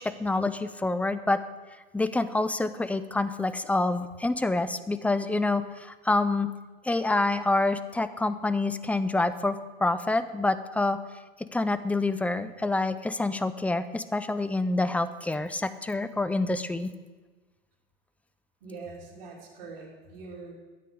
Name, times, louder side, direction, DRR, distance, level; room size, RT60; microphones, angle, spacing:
voice 1, 0.0-1.4 1.9-6.5 6.8-11.0 11.5-16.9, left 2 dB, 5° left, 13 dB, 0.4 m, -27 dB
voice 2, 18.6-20.5, right 4 dB, 60° right, -6 dB, 2.9 m, -43 dB
12.5 x 8.4 x 3.7 m, 1.3 s
hypercardioid pair, 90°, 31 cm